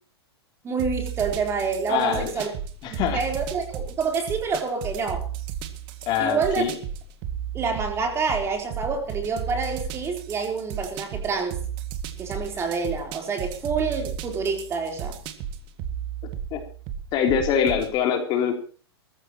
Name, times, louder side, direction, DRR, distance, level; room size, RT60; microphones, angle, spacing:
voice 1, 0.6-2.5 2.9-5.2 6.2-6.6 7.5-11.6 12.2-15.2, right 5 dB, 20° right, 3 dB, 3.8 m, -27 dB
sound 1, 0.8-17.9, right 8 dB, 40° right, 2.1 m, -34 dB
voice 2, 1.9-2.5 2.8-3.2 6.1-6.8 16.5-16.6 17.1-18.6, left 8 dB, 35° left, 4 dB, 3.3 m, -24 dB
23.5 x 15.0 x 3.0 m, 0.40 s
hypercardioid pair, 135°, 14 cm